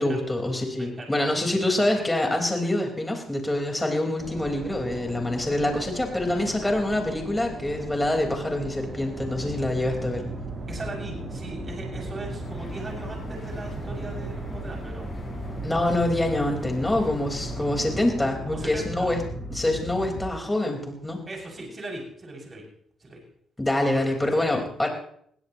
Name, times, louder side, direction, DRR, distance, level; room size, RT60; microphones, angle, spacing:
voice 1, 0.0-10.2 15.6-19.2 19.5-21.2 23.6-24.9, left 1 dB, 10° left, 2 dB, 4.7 m, -25 dB
voice 2, 0.8-1.8 10.7-15.1 18.4-19.1 21.3-22.6 23.0-23.2 23.8-24.0 24.3-24.6, right 2 dB, 30° right, -1 dB, 7.0 m, -39 dB
sound 1, 4.2-18.7, right 2 dB, 50° right, 6.5 m, -39 dB
sound 2, 9.2-20.2, right 1 dB, 10° right, 5.0 m, -37 dB
sound 3, 12.4-18.0, left 3 dB, 30° left, 7.2 m, -45 dB
22.0 x 16.0 x 3.1 m, 0.65 s
cardioid pair, 90°, 0 cm